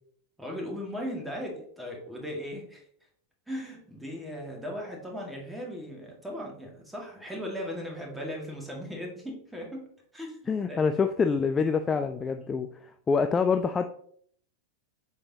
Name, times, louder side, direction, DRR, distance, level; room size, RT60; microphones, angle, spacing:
voice 1, 0.4-2.9 3.5-9.9 10.1-10.9 12.4-12.6, equal, 5° right, -1 dB, 1.8 m, -38 dB
voice 2, 10.5-13.8, left 5 dB, 20° left, 7 dB, 0.3 m, -26 dB
7.1 x 4.8 x 2.8 m, 0.62 s
figure-of-eight pair, 90°, 0 cm